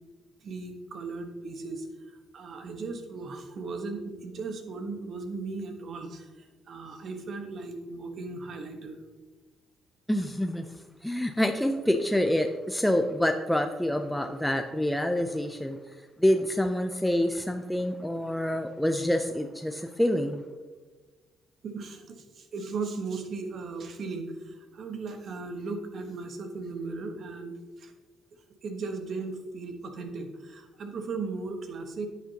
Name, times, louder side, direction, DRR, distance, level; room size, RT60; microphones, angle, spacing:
voice 1, 0.4-9.0 21.6-27.9 28.6-32.1, right 3 dB, 60° right, 6 dB, 1.2 m, -37 dB
voice 2, 10.1-10.7 11.0-15.8 16.2-20.4, left 1 dB, 5° left, 6 dB, 0.6 m, -27 dB
9.5 x 8.5 x 2.9 m, 1.3 s
supercardioid pair, 70°, 0 cm